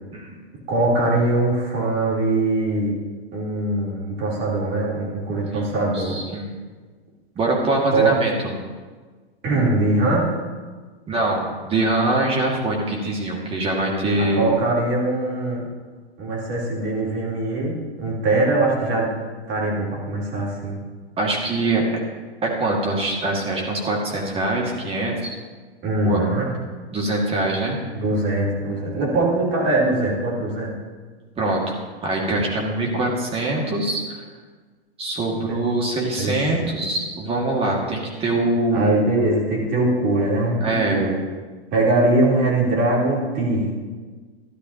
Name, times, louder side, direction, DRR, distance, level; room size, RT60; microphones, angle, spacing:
voice 1, 0.7-2.9 3.3-6.2 7.9-8.1 9.4-10.3 14.2-15.6 16.2-19.1 19.5-20.8 25.8-26.5 27.9-30.7 36.2-36.7 38.7-41.2 41.7-43.7, right 2 dB, 35° right, -4 dB, 3.5 m, -22 dB
voice 2, 5.5-6.5 7.4-8.5 11.1-14.4 21.2-21.8 22.4-25.3 26.0-26.2 26.9-27.8 31.4-31.8 32.0-34.2 35.0-39.0 40.6-41.1, right 2 dB, 15° right, -2 dB, 2.1 m, -23 dB
13.5 x 11.5 x 2.9 m, 1.4 s
hypercardioid pair, 115°, 32 cm